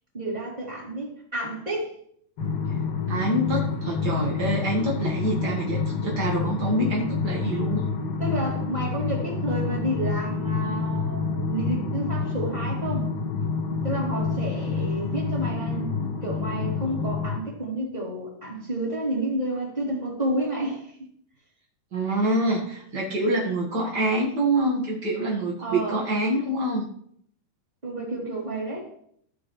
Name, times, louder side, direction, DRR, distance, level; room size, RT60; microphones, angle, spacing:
voice 1, 0.1-1.9 8.2-13.1 13.8-20.9 25.6-26.1 27.8-28.9, right 1 dB, 10° right, -5 dB, 3.0 m, -30 dB
sound 1, 2.4-17.4, left 5 dB, 55° left, 1.8 m, -28 dB
voice 2, 3.1-7.9 21.9-26.9, right 1 dB, 70° right, -3 dB, 0.9 m, -26 dB
15.0 x 6.1 x 3.3 m, 0.66 s
omnidirectional pair, 4.6 m